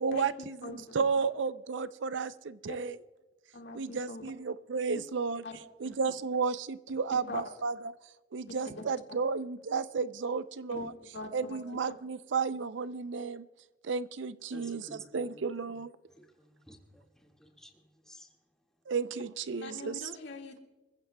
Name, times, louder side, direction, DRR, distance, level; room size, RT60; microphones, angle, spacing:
voice 1, 0.0-3.0 3.7-5.4 5.8-7.9 8.3-10.9 11.3-13.5 13.8-14.8 15.1-15.9 18.9-20.0, right 5 dB, 70° right, 15 dB, 0.5 m, -33 dB
voice 2, 0.6-1.0 2.7-2.8 3.5-4.3 4.9-5.0 5.4-5.6 5.8-5.9 7.3-7.4 8.5-9.2 10.7-10.9 11.1-11.8 19.5-20.6, left 3 dB, 65° left, 2 dB, 1.9 m, -42 dB
voice 3, 14.5-15.4 15.8-18.8, equal, 5° left, 1 dB, 1.8 m, -55 dB
26.5 x 15.0 x 2.2 m, 1.2 s
head